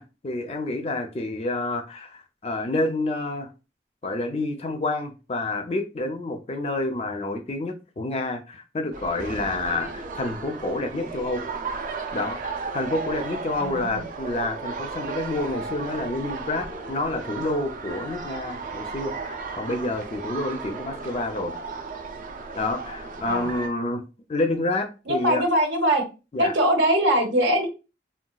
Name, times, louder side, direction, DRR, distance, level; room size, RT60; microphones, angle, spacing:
voice 1, 0.0-3.5 4.0-11.4 12.1-21.5 22.6-24.0 24.3-25.4 26.3-26.5, left 2 dB, 35° left, 6 dB, 0.4 m, -28 dB
sound 1, 8.9-23.7, right 4 dB, 45° right, 0.4 m, -35 dB
voice 2, 13.6-14.1 23.3-23.5 25.1-26.0 26.4-27.7, right 1 dB, 90° right, 5 dB, 0.8 m, -22 dB
3.9 x 2.2 x 2.2 m, 0.30 s
head